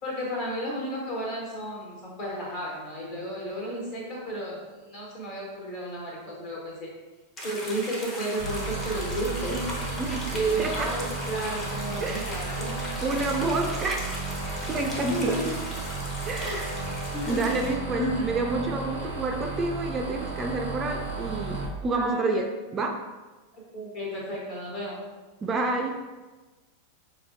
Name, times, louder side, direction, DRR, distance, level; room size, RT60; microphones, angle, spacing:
voice 1, 0.0-6.9 7.4-10.0 10.3-12.8 15.1-15.6 16.4-16.6 17.1-17.4 17.9-18.3 21.9-22.4 23.7-25.0, right 1 dB, 45° left, -3 dB, 1.3 m, -32 dB
sound 1, 7.4-17.7, left 1 dB, 25° left, 0.8 m, -38 dB
sound 2, 8.4-21.6, right 3 dB, 80° left, 1.1 m, -34 dB
voice 2, 12.0-12.3 13.0-14.2 14.7-15.4 16.2-16.7 17.3-22.4 22.7-23.0 25.4-26.0, right 3 dB, 20° right, 2 dB, 0.3 m, -29 dB
5.4 x 2.2 x 2.7 m, 1.2 s
figure-of-eight pair, 90°, 0 cm